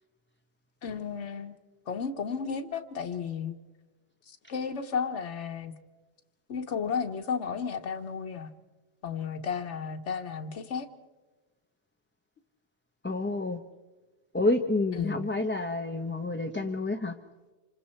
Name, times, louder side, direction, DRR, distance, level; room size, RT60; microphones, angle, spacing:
voice 1, 0.8-1.6 1.9-3.5 4.3-5.7 6.5-8.5 9.0-10.9 15.0-15.3, left 6 dB, 85° left, 1.3 m, -33 dB
voice 2, 13.0-13.6 14.3-17.1, left 2 dB, 10° left, 0.7 m, -29 dB
27.5 x 25.5 x 4.4 m
omnidirectional pair, 1.2 m